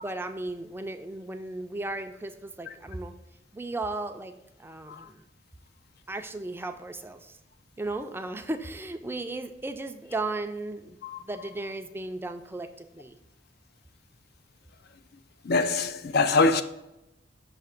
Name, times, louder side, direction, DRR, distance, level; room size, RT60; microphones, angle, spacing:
voice 1, 0.0-3.1 3.5-4.3 4.6-5.2 6.1-7.4 7.8-13.2, right 2 dB, 15° right, 0.4 m, -35 dB
voice 2, 15.4-16.6, left 3 dB, 60° left, 0.5 m, -24 dB
6.7 x 2.8 x 5.8 m
head